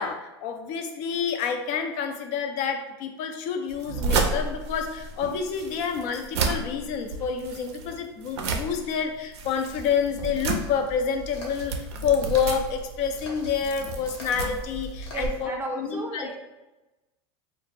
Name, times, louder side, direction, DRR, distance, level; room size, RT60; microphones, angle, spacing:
voice 1, 0.0-11.7 12.0-16.3, left 6 dB, 55° left, 6 dB, 0.4 m, -28 dB
sound 1, 3.7-15.4, right 4 dB, 80° right, 0.4 m, -32 dB
sound 2, 9.7-15.3, left 1 dB, 85° left, 0.8 m, -40 dB
voice 2, 15.1-16.3, right 2 dB, 15° right, 0 dB, 0.5 m, -33 dB
2.4 x 2.0 x 3.2 m, 1.0 s
hypercardioid pair, 100°, 14 cm